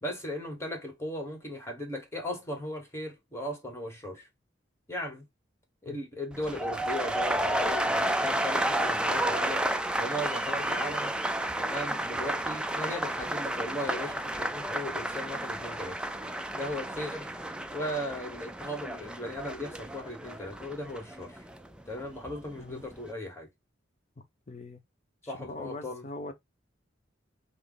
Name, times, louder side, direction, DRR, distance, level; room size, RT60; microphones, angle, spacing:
voice 1, 0.0-4.3 4.9-5.2 5.8-9.7 10.0-11.1 11.6-16.0 16.5-17.3 17.7-21.5 21.9-23.5 25.2-26.0, left 1 dB, 15° left, 1.2 m, -37 dB
sound 1, 6.3-22.4 22.7-23.1, right 1 dB, 5° right, 0.4 m, -31 dB
voice 2, 24.5-24.8 25.2-26.3, left 2 dB, 35° left, 0.7 m, -41 dB
5.6 x 2.0 x 3.8 m
head